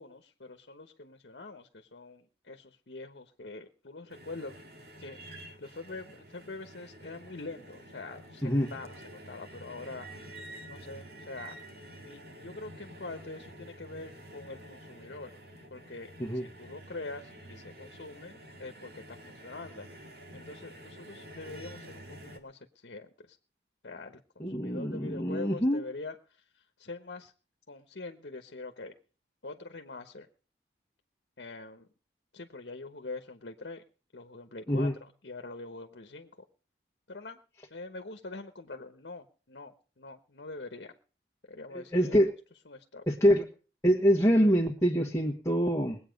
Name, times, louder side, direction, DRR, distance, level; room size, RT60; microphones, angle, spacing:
voice 1, 0.0-4.5 5.0-10.3 10.7-11.6 12.1-15.3 15.7-20.0 20.3-23.4 23.8-27.3 27.7-28.9 29.4-30.3 31.4-31.9 32.3-33.8 34.1-36.3 37.1-37.4 37.7-40.9 41.5-42.2 42.7-43.0, left 3 dB, 80° left, 6 dB, 1.1 m, -44 dB
sound 1, 4.1-22.4, right 1 dB, 60° right, 2.1 m, -49 dB
voice 2, 8.4-8.7 16.2-16.4 24.4-25.8 34.7-34.9 41.9-42.3 43.1-43.4 43.8-46.0, equal, 15° left, -2 dB, 1.5 m, -25 dB
21.0 x 8.7 x 5.2 m, 0.38 s
head